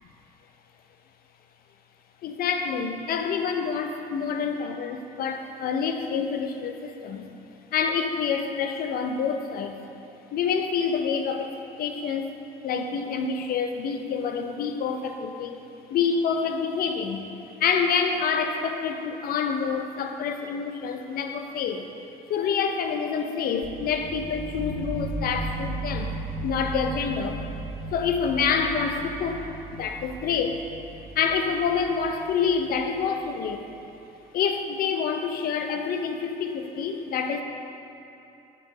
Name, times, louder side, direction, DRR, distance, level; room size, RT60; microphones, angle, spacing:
voice 1, 2.2-7.3 7.7-9.8 10.3-12.4 12.6-15.6 15.9-17.3 17.6-21.9 22.3-27.4 27.9-29.4 29.7-30.6 31.1-33.6 34.3-37.4, left 6 dB, 60° left, 6 dB, 0.6 m, -27 dB
sound 1, 23.6-33.4, right 2 dB, 5° right, 1.4 m, -36 dB
6.8 x 5.9 x 4.8 m, 3.0 s
cardioid pair, 110°, 17 cm